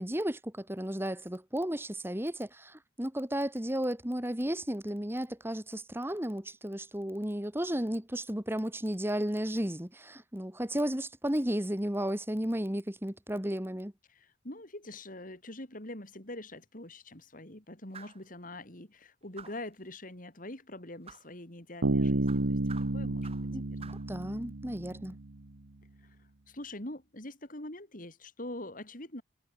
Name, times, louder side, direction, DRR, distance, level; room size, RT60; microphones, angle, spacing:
voice 1, 0.0-13.9 23.5-23.6 24.1-25.2, equal, 10° right, 2.3 m, -33 dB
voice 2, 14.1-22.6 22.9-23.3 23.7-24.0 26.0-26.2 26.5-29.2, left 1 dB, 45° left, 4.3 m, -44 dB
sound 1, 17.9-18.3 19.4-19.7 21.1-21.3 22.3-23.5 23.8-24.1, right 6 dB, 35° right, 5.5 m, -50 dB
Bass guitar, 21.8-25.3, right 2 dB, 90° right, 1.1 m, -31 dB
head